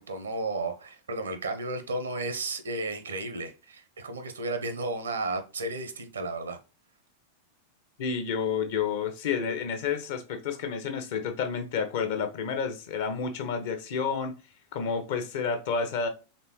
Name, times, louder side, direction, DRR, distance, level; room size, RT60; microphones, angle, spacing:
voice 1, 0.0-6.6, right 2 dB, 70° right, 0.8 m, -33 dB
voice 2, 8.0-14.4 14.7-16.1, left 6 dB, 50° left, 0.9 m, -30 dB
4.3 x 3.3 x 3.0 m
figure-of-eight pair, 90°, 0 cm